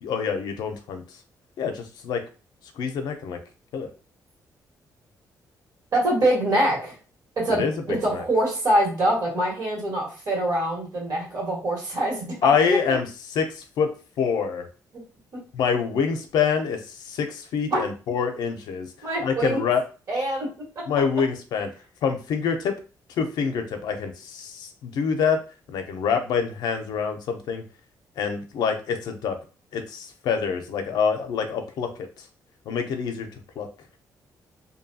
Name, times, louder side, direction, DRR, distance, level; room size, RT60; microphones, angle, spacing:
voice 1, 0.0-1.0 1.6-2.2 2.8-3.4 3.7-3.9 7.5-8.2 12.4-14.7 15.5-19.8 20.9-21.7 22.0-22.8 23.2-25.4 25.7-27.6 28.2-29.4 29.7-32.1 32.7-33.7, left 6 dB, 80° left, 6 dB, 0.5 m, -26 dB
voice 2, 5.9-6.9 7.4-12.8 17.7-17.8 19.0-19.6 20.1-20.5, right 1 dB, 60° right, -4 dB, 1.5 m, -24 dB
2.7 x 2.2 x 2.7 m, 0.36 s
cardioid pair, 115°, 7 cm